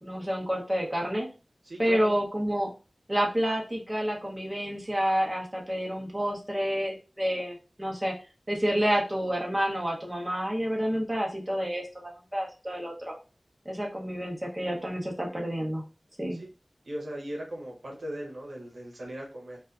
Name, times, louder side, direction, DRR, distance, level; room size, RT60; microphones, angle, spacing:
voice 1, 0.0-1.3 1.8-2.7 3.1-8.1 8.5-13.1 13.7-15.8 16.2-16.4, equal, 20° right, -2 dB, 0.8 m, -29 dB
voice 2, 1.6-2.2 16.3-16.5 16.8-19.6, right 1 dB, 90° right, -1 dB, 0.7 m, -38 dB
2.5 x 2.2 x 2.3 m, 0.33 s
wide cardioid pair, 55°, 0 cm